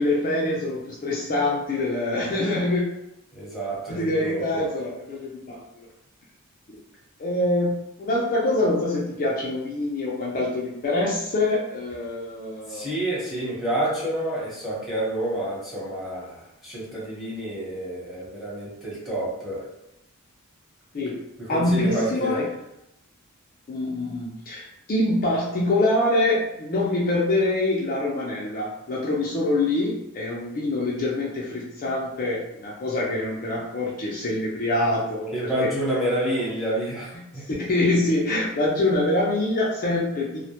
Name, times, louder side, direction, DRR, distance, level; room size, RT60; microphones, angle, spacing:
voice 1, 0.0-2.8 3.9-5.6 7.2-7.7 8.0-12.9 20.9-21.1 21.5-22.5 23.7-35.7 36.3-36.4 37.1-40.5, left 2 dB, 40° left, -5 dB, 0.4 m, -25 dB
voice 2, 3.3-4.7 12.7-19.7 21.4-22.4 35.3-37.4, right 1 dB, ahead, -8 dB, 0.9 m, -29 dB
2.1 x 2.1 x 2.8 m, 0.86 s
head